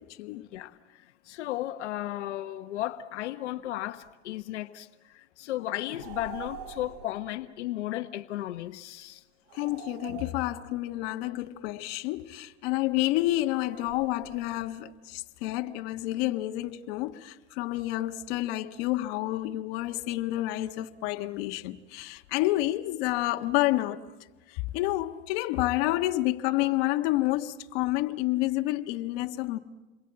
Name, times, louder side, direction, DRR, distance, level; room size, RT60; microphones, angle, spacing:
voice 1, 0.0-0.5 9.5-24.0 24.5-29.6, left 17 dB, 60° left, 1.5 m, -29 dB
voice 2, 0.5-9.2, left 14 dB, 85° left, 1.1 m, -35 dB
sound 1, 5.9-7.2 9.5-10.9 13.6-14.7, right 8 dB, 55° right, 5.6 m, -45 dB
29.0 x 22.5 x 8.8 m
supercardioid pair, 135°, 34 cm